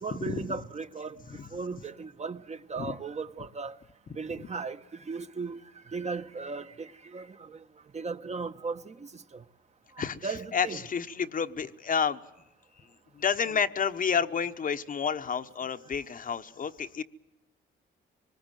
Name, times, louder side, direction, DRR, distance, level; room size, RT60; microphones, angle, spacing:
voice 1, 0.0-3.8 4.1-5.6 5.9-7.6 7.9-9.4 10.0-10.8 13.5-13.6, right 4 dB, 35° right, 1.3 m, -37 dB
voice 2, 10.5-12.2 13.2-17.0, left 6 dB, 45° left, 1.1 m, -29 dB
24.5 x 20.5 x 9.2 m
cardioid pair, 90°, 20 cm